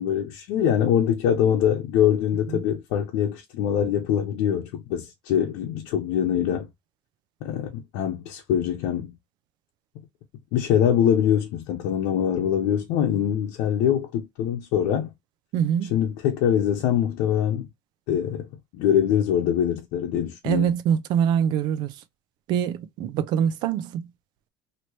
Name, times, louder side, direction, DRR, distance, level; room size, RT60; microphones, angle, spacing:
voice 1, 0.0-6.7 7.4-9.1 10.5-15.1 15.9-17.7 18.1-18.5 18.7-20.7, left 9 dB, 70° left, 0.8 m, -23 dB
voice 2, 15.5-15.9 20.4-21.9 22.5-24.1, right 8 dB, 55° right, 0.5 m, -24 dB
3.1 x 2.9 x 3.0 m
cardioid pair, 145°, 9 cm